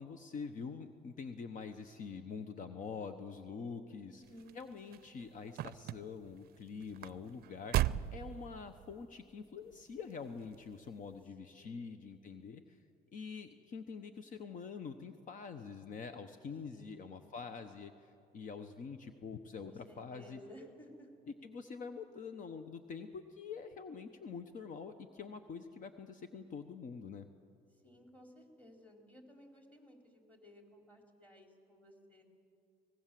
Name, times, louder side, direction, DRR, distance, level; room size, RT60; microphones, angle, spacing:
voice 1, 0.0-4.2 4.5-12.8 13.1-20.4 21.3-27.3, left 5 dB, 50° left, 9 dB, 1.0 m, -46 dB
voice 2, 4.0-4.6 11.4-11.9 16.7-17.3 19.6-21.1 27.8-32.2, left 1 dB, 10° left, 2 dB, 4.0 m, -57 dB
sound 1, 4.2-9.0 9.7-10.1 10.5-10.6, right 14 dB, 65° right, 0.5 m, -37 dB
24.5 x 19.0 x 7.6 m, 2.5 s
cardioid pair, 110°, 17 cm